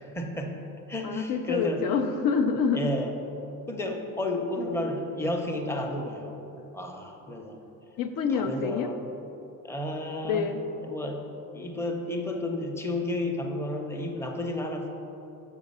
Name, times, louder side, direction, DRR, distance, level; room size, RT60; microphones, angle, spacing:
voice 1, 0.0-1.9 2.7-3.1 3.7-6.4 6.7-7.6 8.3-9.0 9.6-10.5 10.8-14.9, left 1 dB, 5° left, 2 dB, 0.7 m, -32 dB
voice 2, 1.0-2.9 8.0-8.9 10.2-10.6, left 5 dB, 70° left, 6 dB, 0.6 m, -27 dB
6.2 x 5.1 x 5.4 m, 2.9 s
cardioid pair, 100°, 35 cm